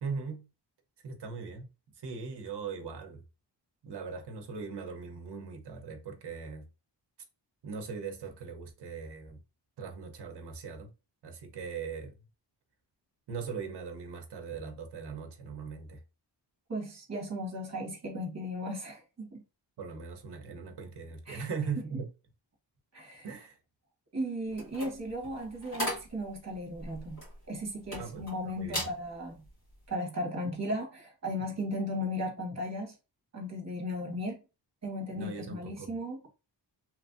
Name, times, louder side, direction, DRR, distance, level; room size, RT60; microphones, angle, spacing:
voice 1, 0.0-0.5 1.0-1.7 2.0-3.2 3.8-6.7 7.6-9.4 9.8-10.9 11.2-12.1 13.3-16.0 19.8-22.1 23.2-23.6 28.0-28.3 28.6-28.9 35.1-35.9, right 5 dB, 65° right, 0.7 m, -39 dB
voice 2, 16.7-19.4 21.3-21.5 22.9-23.3 24.1-27.2 27.5-29.4 29.9-32.9 33.3-34.4 34.8-36.2, equal, 35° right, 1.1 m, -36 dB
sound 1, 24.5-28.3 28.7-29.0 29.5-29.7, equal, 40° left, 1.7 m, -38 dB
2.9 x 2.5 x 2.5 m
wide cardioid pair, 175°, 44 cm